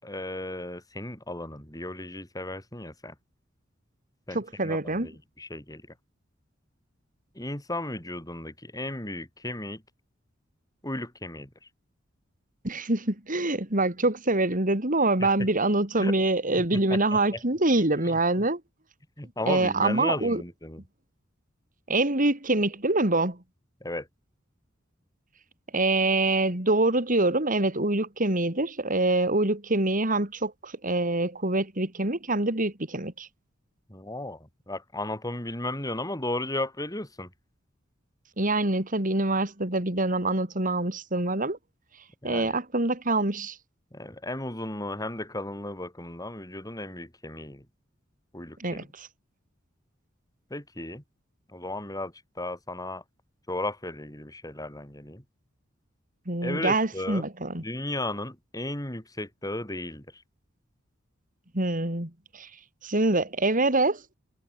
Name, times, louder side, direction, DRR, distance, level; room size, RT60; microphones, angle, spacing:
voice 1, 0.0-3.2 4.3-5.8 7.4-9.8 10.8-11.5 15.2-15.5 16.0-16.1 16.7-17.4 19.2-20.8 23.8-24.1 33.9-37.3 42.2-42.6 43.9-47.7 48.3-48.9 50.5-51.0 51.5-53.0 53.5-55.2 56.4-57.3 57.6-60.2, left 1 dB, 20° left, 7.0 m, -35 dB
voice 2, 4.3-5.1 12.6-18.6 19.5-20.4 21.9-23.4 25.7-33.3 38.4-41.6 42.2-43.6 48.6-49.1 56.3-57.6 61.5-62.5 62.8-64.2, right 2 dB, 45° right, 3.8 m, -25 dB
head